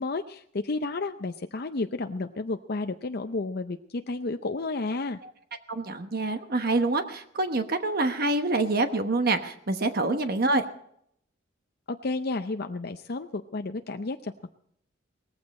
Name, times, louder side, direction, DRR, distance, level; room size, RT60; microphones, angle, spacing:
voice 1, 0.0-5.2 10.0-10.2 11.9-14.5, left 3 dB, 50° left, 7 dB, 0.6 m, -32 dB
voice 2, 5.7-10.6, right 2 dB, 50° right, 7 dB, 1.1 m, -26 dB
18.5 x 15.0 x 4.2 m, 0.70 s
head